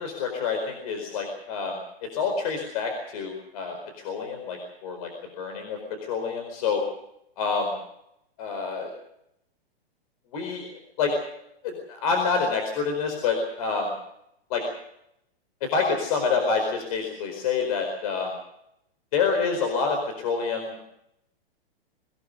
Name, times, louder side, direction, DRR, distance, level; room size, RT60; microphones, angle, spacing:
voice 1, 0.0-1.8 2.1-3.7 4.0-5.1 5.4-5.8 6.1-6.8 7.4-7.7 8.4-8.9 10.3-10.7 11.0-11.2 11.6-13.9 14.5-14.6 15.6-18.3 19.1-20.9, left 5 dB, 35° left, 4 dB, 4.6 m, -27 dB
23.5 x 18.0 x 6.8 m, 0.79 s
hypercardioid pair, 175°, 31 cm